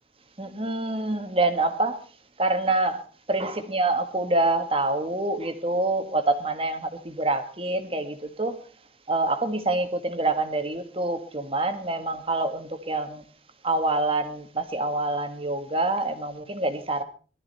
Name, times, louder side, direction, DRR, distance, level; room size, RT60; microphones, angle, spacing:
voice 1, 0.4-2.0 2.4-3.0 3.3-8.6 9.1-13.2 13.6-17.0, right 2 dB, 30° right, 1.7 m, -26 dB
18.5 x 13.0 x 4.3 m
head